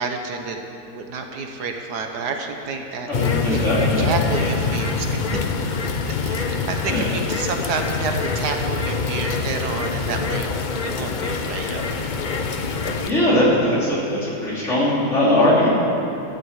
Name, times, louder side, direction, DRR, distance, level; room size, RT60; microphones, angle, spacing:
voice 1, 0.0-5.4 5.8-10.5 10.8-12.0, right 4 dB, 70° right, 4 dB, 1.5 m, -30 dB
sound 1, 3.1-13.1, left 4 dB, 70° left, 0.4 m, -25 dB
voice 2, 3.1-4.1 6.9-7.1 13.1-15.7, left 1 dB, 45° left, -7 dB, 3.6 m, -20 dB
12.5 x 8.1 x 8.1 m, 2.9 s
omnidirectional pair, 1.8 m